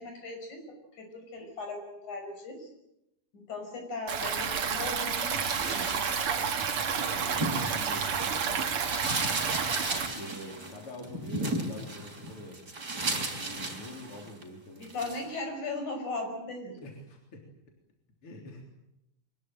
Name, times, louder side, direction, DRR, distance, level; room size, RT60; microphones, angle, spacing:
voice 1, 0.0-2.7 3.3-5.9 14.8-16.8, left 2 dB, 65° left, 4 dB, 7.3 m, -38 dB
Stream, 4.1-10.1, right 6 dB, 50° right, 2.4 m, -30 dB
sound 1, 5.3-8.5 8.7-14.4 14.8-15.2, right 2 dB, 30° right, 4.7 m, -35 dB
voice 2, 7.0-9.4 10.0-12.6 13.3-14.9 16.8-17.4 18.2-18.6, left 1 dB, 45° left, 1 dB, 4.3 m, -45 dB
24.5 x 20.5 x 9.0 m, 0.86 s
omnidirectional pair, 3.7 m